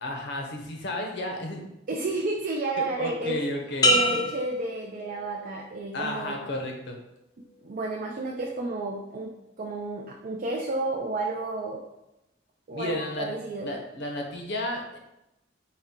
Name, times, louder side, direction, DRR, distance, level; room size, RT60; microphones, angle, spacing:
voice 1, 0.0-1.6 2.8-4.2 5.9-7.0 12.7-13.3 13.6-15.0, left 1 dB, 65° left, 1 dB, 0.7 m, -32 dB
voice 2, 1.9-3.4 3.8-6.4 7.6-11.8 12.7-13.7, right 2 dB, 45° right, 0 dB, 0.4 m, -31 dB
sound 1, 3.8-5.6 6.1-6.6, left 1 dB, 20° left, 0.4 m, -26 dB
4.1 x 2.2 x 3.6 m, 0.89 s
head